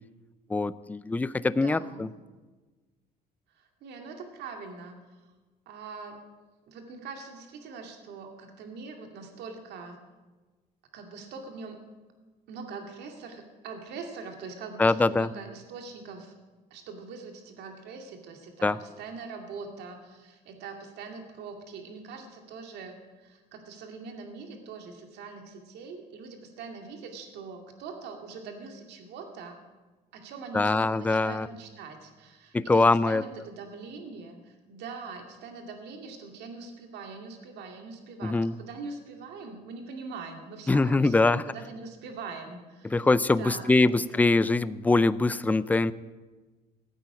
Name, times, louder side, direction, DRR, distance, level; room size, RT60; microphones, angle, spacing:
voice 1, 0.5-2.1 14.8-15.3 18.6-18.8 30.5-31.5 32.5-33.2 38.2-38.5 40.7-41.4 42.9-45.9, left 3 dB, 10° left, 17 dB, 0.4 m, -23 dB
voice 2, 1.5-2.1 3.6-5.0 5.7-6.2 6.7-10.0 10.9-11.8 12.5-16.3 16.7-29.6 30.1-44.1, right 4 dB, 80° right, 3 dB, 2.4 m, -42 dB
15.5 x 8.9 x 8.5 m, 1.3 s
cardioid pair, 110°, 17 cm